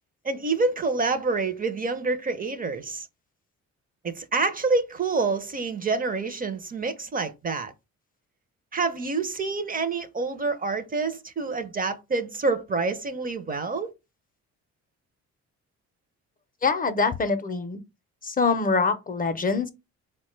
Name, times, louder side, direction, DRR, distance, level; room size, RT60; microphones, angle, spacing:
voice 1, 0.2-3.1 4.0-7.7 8.7-13.9, right 3 dB, 30° right, 0.5 m, -27 dB
voice 2, 16.6-17.8 18.2-19.7, left 4 dB, 30° left, 0.5 m, -24 dB
4.3 x 2.2 x 3.1 m
cardioid pair, 90°, 30 cm